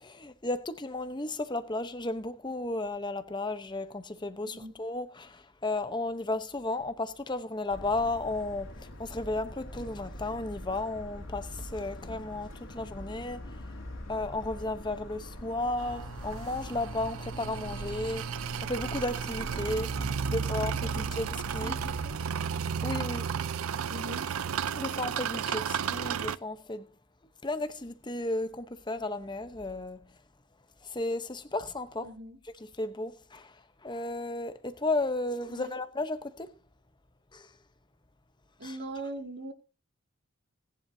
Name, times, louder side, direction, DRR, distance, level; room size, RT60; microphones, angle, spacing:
voice 1, 0.0-13.7 14.1-18.3 18.6-21.8 22.8-23.3 24.7-26.9 27.4-30.2 30.8-32.1 32.4-36.6 37.3-37.5 38.6-38.8, left 2 dB, 20° left, 1.0 m, -34 dB
voice 2, 4.5-4.8 21.0-21.1 21.6-22.2 23.9-24.3 32.0-32.4 35.5-35.8 38.6-39.5, right 1 dB, 50° right, 2.4 m, -41 dB
Motor vehicle (road) / Siren, 7.7-22.2, left 1 dB, 65° left, 2.8 m, -43 dB
sound 1, 15.8-26.4, right 7 dB, 80° right, 0.5 m, -33 dB
18.5 x 11.0 x 2.8 m
head